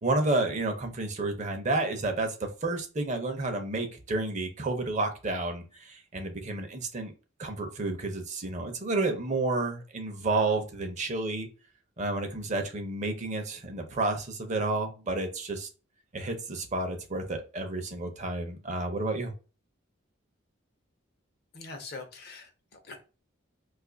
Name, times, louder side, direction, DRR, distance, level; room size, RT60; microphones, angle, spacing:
voice 1, 0.0-7.1 7.4-11.5 12.0-15.7 16.1-19.3, right 2 dB, 35° right, 5 dB, 0.6 m, -30 dB
voice 2, 21.5-23.0, left 3 dB, 50° left, 5 dB, 0.6 m, -43 dB
2.6 x 2.4 x 3.8 m, 0.33 s
head